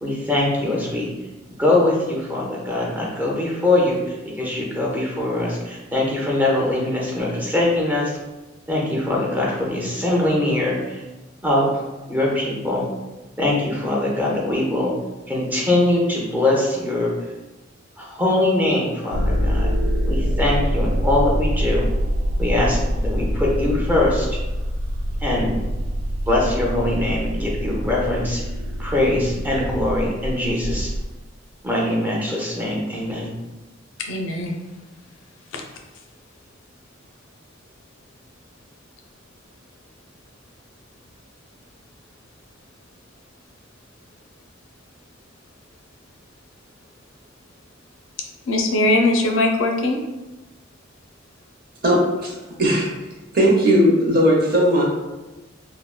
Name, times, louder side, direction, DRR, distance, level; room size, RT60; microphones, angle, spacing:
voice 1, 0.0-1.1 1.6-8.1 8.7-11.0 11.4-11.7 12.1-12.8 13.4-14.9 15.3-17.1 18.0-19.7 20.1-21.8 22.4-24.3 25.2-25.5 26.2-28.4 28.8-30.9 31.6-33.3, left 1 dB, 10° right, -3 dB, 0.6 m, -22 dB
sound 1, 19.1-31.0, equal, 75° right, 0.3 m, -24 dB
voice 2, 34.0-34.6 35.5-35.6 48.5-50.0, left 2 dB, 80° left, 3 dB, 0.4 m, -20 dB
voice 3, 51.8-52.9 53.3-54.8, equal, 50° right, -3 dB, 0.7 m, -17 dB
3.5 x 2.0 x 2.2 m, 1.1 s
head